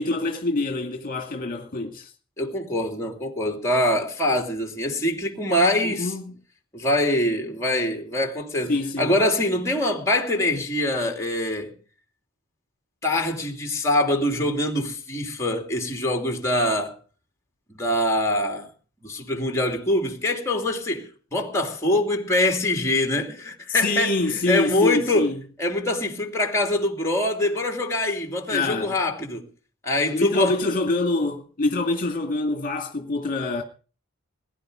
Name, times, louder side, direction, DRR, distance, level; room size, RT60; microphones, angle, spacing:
voice 1, 0.0-2.1 5.8-6.3 8.7-9.2 23.7-25.4 28.5-29.0 30.1-33.6, left 2 dB, 40° left, 2.1 m, -25 dB
voice 2, 2.4-6.1 6.7-11.7 13.0-17.0 17.8-18.7 19.0-25.3 25.6-29.5 29.8-30.5, left 1 dB, 15° left, 2.8 m, -24 dB
20.5 x 11.0 x 5.0 m
head